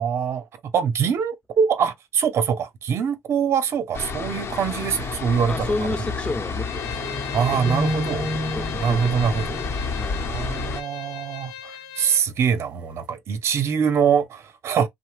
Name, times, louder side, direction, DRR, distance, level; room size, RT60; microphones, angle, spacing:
voice 1, 0.0-6.0 7.3-8.3 8.8-9.6 10.3-14.9, right 7 dB, 50° right, 0.7 m, -24 dB
sound 1, 3.9-10.8, left 4 dB, 50° left, 0.9 m, -30 dB
voice 2, 5.5-7.1 7.6-7.9 8.5-10.2, left 2 dB, 20° left, 0.7 m, -32 dB
Bowed string instrument, 6.6-12.2, left 9 dB, 90° left, 0.5 m, -38 dB
sound 2, 7.0-10.4, right 1 dB, 20° right, 0.5 m, -30 dB
2.7 x 2.1 x 3.1 m
cardioid pair, 95°, 6 cm